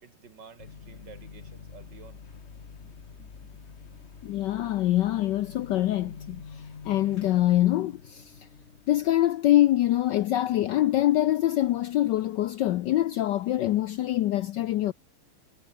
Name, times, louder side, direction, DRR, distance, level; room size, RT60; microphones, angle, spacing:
voice 1, 0.0-2.2 2.8-3.3 3.9-4.0, right 6 dB, 55° right, 2.6 m, -52 dB
sound 1, 0.6-9.1, left 5 dB, 35° left, 1.5 m, -46 dB
voice 2, 4.2-8.4 8.9-14.9, left 14 dB, 75° left, 1.1 m, -24 dB
omnidirectional pair, 2.4 m